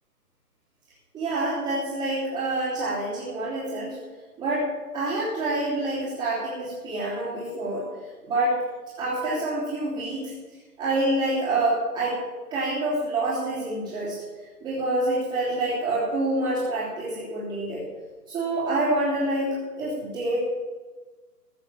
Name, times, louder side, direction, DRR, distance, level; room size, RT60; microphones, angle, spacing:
voice 1, 1.1-4.0 4.4-7.8 8.2-8.6 9.0-10.3 10.8-12.2 12.5-14.2 14.6-17.8 18.3-20.4, right 2 dB, 15° right, -11 dB, 3.4 m, -27 dB
15.5 x 7.0 x 7.2 m, 1.3 s
figure-of-eight pair, 145°, 47 cm